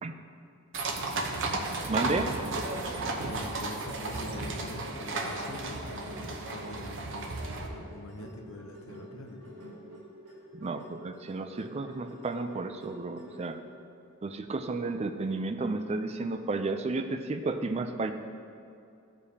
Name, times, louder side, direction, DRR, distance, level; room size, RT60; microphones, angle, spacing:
sound 1, 0.7-7.7, right 2 dB, 55° right, 0.8 m, -34 dB
voice 1, 1.9-2.3 10.5-13.6 14.2-18.1, right 3 dB, 30° right, 8 dB, 0.3 m, -32 dB
voice 2, 3.2-5.8 6.2-7.2 7.9-9.4, left 1 dB, 65° left, 4 dB, 0.8 m, -44 dB
sound 2, 4.1-13.6, equal, 85° right, 1.7 m, -49 dB
14.0 x 5.0 x 2.8 m, 2.5 s
head